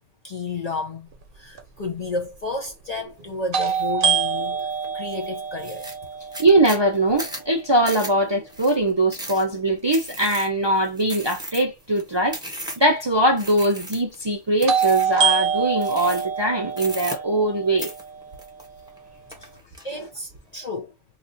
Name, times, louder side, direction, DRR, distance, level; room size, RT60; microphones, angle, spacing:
voice 1, 0.2-1.1 1.3-4.6 4.9-5.9 19.8-20.9, left 3 dB, 45° left, 0.5 m, -31 dB
sound 1, 1.6-1.7 3.5-7.4 14.7-18.7, right 7 dB, 50° right, 1.0 m, -25 dB
sound 2, 3.7-3.9 4.4-4.9 5.2-5.3 5.6-13.0 13.4-14.2 14.6-15.2 15.8-16.4 16.7-17.5 17.8-19.0 19.3-19.8, right 1 dB, 5° right, 0.8 m, -36 dB
voice 2, 6.4-17.9 20.0-20.1, right 1 dB, 35° right, 0.5 m, -21 dB
2.9 x 2.4 x 3.8 m
omnidirectional pair, 1.2 m